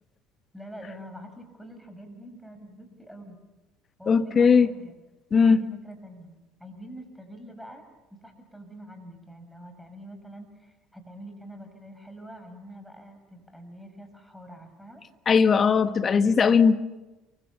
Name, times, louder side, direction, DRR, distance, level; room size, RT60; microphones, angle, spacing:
voice 1, 0.5-3.4 4.0-4.9 5.5-7.8 8.1-15.0, right 1 dB, ahead, 6.7 m, -45 dB
voice 2, 4.1-4.7 5.3-5.6 15.3-16.8, left 5 dB, 35° left, 1.4 m, -19 dB
28.5 x 24.5 x 7.2 m
figure-of-eight pair, 60°, 0 cm